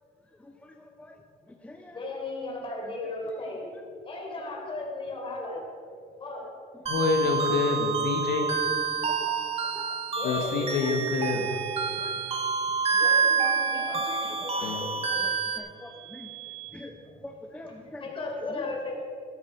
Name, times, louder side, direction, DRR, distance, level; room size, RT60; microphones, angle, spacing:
voice 1, 0.3-2.0 2.8-3.1 6.9-7.1 7.7-7.9 9.1-9.4 9.7-10.0 10.7-11.0 11.5-11.6 12.0-12.5 12.9-13.2 13.9-16.3 16.7-18.7, left 1 dB, 10° left, 3 dB, 0.8 m, -46 dB
voice 2, 1.9-3.7 4.0-5.6 6.2-6.5 10.1-10.8 13.0-15.2 15.7-15.8 17.1-17.2 18.0-19.0, left 2 dB, 30° left, -1 dB, 3.8 m, -36 dB
voice 3, 6.9-8.5 10.2-11.5 14.6-14.8, left 4 dB, 75° left, 3 dB, 1.6 m, -27 dB
sound 1, 6.9-15.6, right 5 dB, 35° right, 1.6 m, -28 dB
sound 2, 10.1-16.7, right 20 dB, 85° right, 2.3 m, -45 dB
14.5 x 12.5 x 4.6 m, 2.4 s
cardioid pair, 110°, 17 cm